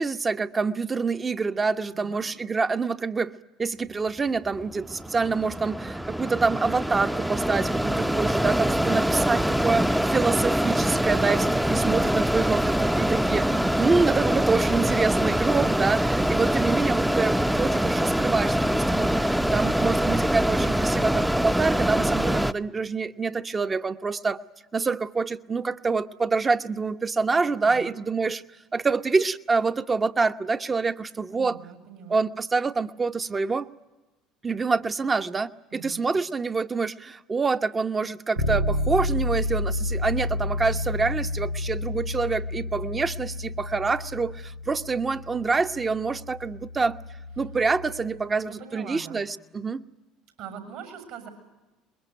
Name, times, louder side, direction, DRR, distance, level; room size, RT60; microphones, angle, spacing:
voice 1, 0.0-3.3 3.6-24.4 24.7-28.4 28.7-31.6 32.1-33.7 34.4-47.0 47.4-49.9, right 4 dB, 25° right, 10 dB, 1.0 m, -26 dB
voice 2, 1.9-2.2 27.6-27.9 31.3-32.2 35.7-36.0 48.4-49.2 50.4-51.3, right 7 dB, 70° right, 6 dB, 6.8 m, -42 dB
Mechanisms, 4.5-22.5, equal, 5° right, 0.8 m, -24 dB
Bass guitar, 38.4-48.2, left 1 dB, 90° right, 1.7 m, -31 dB
23.5 x 22.0 x 9.1 m, 1.1 s
hypercardioid pair, 65°, 0 cm